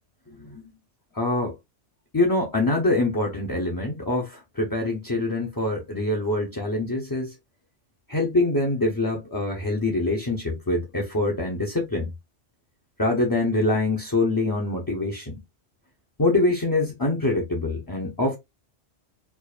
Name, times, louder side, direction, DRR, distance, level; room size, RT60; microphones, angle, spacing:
voice 1, 0.3-0.6 1.1-1.6 2.1-7.3 8.1-12.1 13.0-15.4 16.2-18.4, left 2 dB, 20° left, 0.7 m, -24 dB
4.6 x 2.5 x 2.4 m
omnidirectional pair, 1.2 m